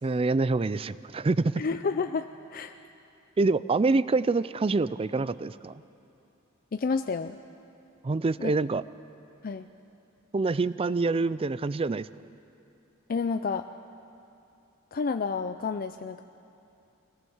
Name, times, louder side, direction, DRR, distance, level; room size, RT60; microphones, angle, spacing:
voice 1, 0.0-1.6 3.4-5.7 8.0-8.8 10.3-12.1, right 3 dB, 30° right, 17 dB, 0.4 m, -26 dB
voice 2, 1.6-2.7 6.7-7.4 8.4-8.5 9.4-9.7 13.1-13.7 14.9-16.2, left 4 dB, 45° left, 8 dB, 0.4 m, -30 dB
22.5 x 17.5 x 7.2 m, 2.7 s
head